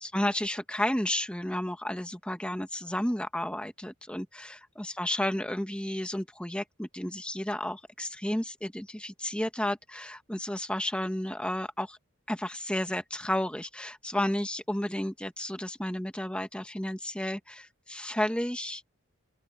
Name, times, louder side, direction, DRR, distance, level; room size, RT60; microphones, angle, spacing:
voice 1, 0.0-12.0 12.3-18.8, left 1 dB, 5° left, 1.1 m, -32 dB
open air
head